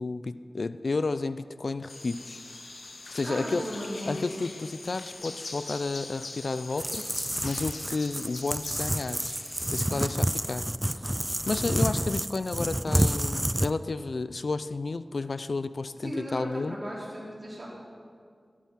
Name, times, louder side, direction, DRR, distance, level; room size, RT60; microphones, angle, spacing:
voice 1, 0.0-2.4 3.1-3.7 4.1-7.0 7.4-9.4 9.7-10.6 11.5-16.8, left 3 dB, 70° left, 13 dB, 0.4 m, -31 dB
sound 1, 1.9-10.2, left 3 dB, 85° left, 1.4 m, -43 dB
voice 2, 3.2-4.2 16.0-17.7, equal, 45° right, -6 dB, 4.4 m, -36 dB
sound 2, 6.8-13.7, right 1 dB, 10° right, 0.3 m, -29 dB
15.0 x 11.0 x 5.8 m, 2.2 s
wide cardioid pair, 75°, 0 cm